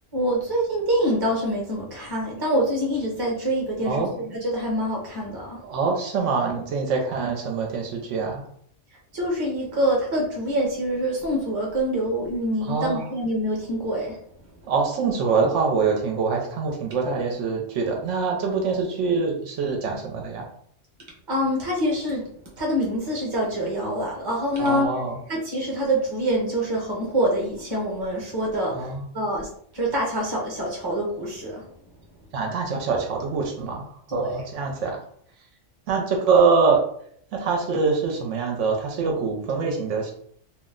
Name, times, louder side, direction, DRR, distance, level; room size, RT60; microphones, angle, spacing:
voice 1, 0.1-5.6 9.1-14.2 21.3-22.2 22.6-24.9 25.3-29.5 29.7-31.6 34.1-34.4, equal, 20° right, -2 dB, 0.7 m, -25 dB
voice 2, 5.6-8.4 12.7-13.1 14.7-20.4 24.6-25.2 28.7-29.1 32.3-35.0 35.9-36.8 37.3-40.1, right 4 dB, 75° right, 1 dB, 0.9 m, -24 dB
2.5 x 2.0 x 3.6 m, 0.63 s
omnidirectional pair, 1.3 m